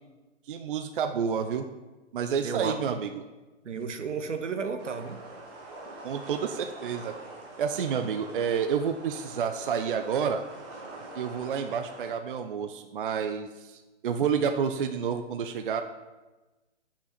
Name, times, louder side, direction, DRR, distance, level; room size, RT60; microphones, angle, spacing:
voice 1, 0.5-1.7 2.1-3.2 6.0-7.2 7.6-10.4 11.1-15.8, right 7 dB, 50° right, 8 dB, 0.5 m, -29 dB
voice 2, 2.4-3.0 3.6-5.2, right 5 dB, 80° right, 8 dB, 1.0 m, -33 dB
sound 1, 4.8-12.1, right 2 dB, 25° right, 1.2 m, -44 dB
7.9 x 5.7 x 4.2 m, 1.2 s
hypercardioid pair, 145°, 36 cm